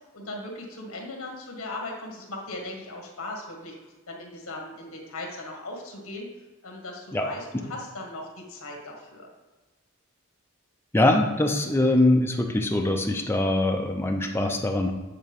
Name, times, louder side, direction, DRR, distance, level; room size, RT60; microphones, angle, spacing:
voice 1, 0.1-3.7 4.1-6.3 6.6-9.3, left 2 dB, 70° left, 0 dB, 1.6 m, -38 dB
voice 2, 10.9-14.9, left 1 dB, 10° left, 2 dB, 0.5 m, -23 dB
8.8 x 3.6 x 3.5 m, 1.2 s
head